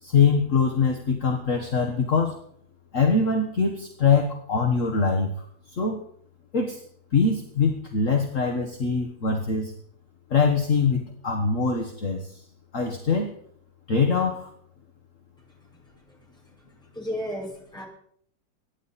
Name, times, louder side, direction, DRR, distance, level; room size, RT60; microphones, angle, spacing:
voice 1, 0.0-2.4 2.9-5.3 5.7-6.0 6.5-6.8 7.1-9.7 10.3-12.4 12.7-13.3 13.9-14.5, left 5 dB, 45° left, 2 dB, 1.7 m, -23 dB
voice 2, 16.9-17.8, equal, ahead, -3 dB, 5.3 m, -32 dB
23.5 x 10.5 x 4.2 m, 0.64 s
omnidirectional pair, 2.0 m